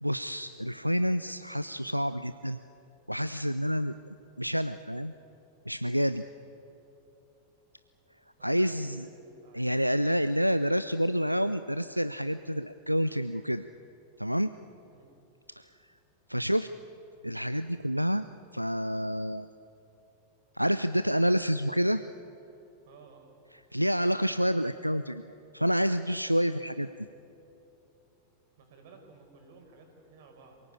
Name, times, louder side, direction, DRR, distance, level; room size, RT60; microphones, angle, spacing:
voice 1, 0.0-2.6 3.1-3.9 4.4-5.1 5.7-6.2 8.4-9.0 9.5-13.7 14.2-14.5 15.5-15.7 16.3-16.7 17.2-18.2 18.5-19.5 20.5-22.0 23.7-25.2 25.5-26.9, equal, 90° right, 12 dB, 0.5 m, -28 dB
voice 2, 8.4-9.8 14.8-15.1 22.8-23.3 28.6-30.6, right 4 dB, 55° right, 3 dB, 5.2 m, -55 dB
26.5 x 18.0 x 8.7 m, 2.9 s
figure-of-eight pair, 90°, 0 cm